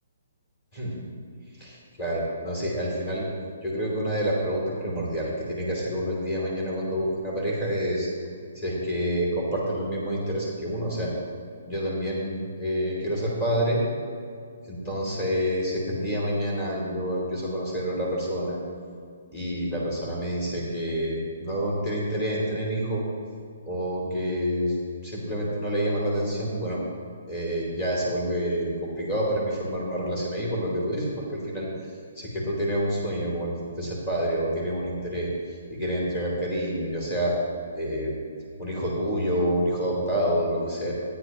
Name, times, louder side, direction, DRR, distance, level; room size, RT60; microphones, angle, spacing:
voice 1, 1.6-3.3 3.6-8.1 8.5-11.1 11.6-13.8 14.7-18.6 19.3-23.0 23.7-24.7 25.0-26.8 27.3-31.7 32.1-35.3 35.7-37.3 37.7-38.2 38.6-40.9, equal, 25° left, -4 dB, 2.9 m, -28 dB
13.5 x 9.7 x 3.0 m, 2.3 s
hypercardioid pair, 165°, 0 cm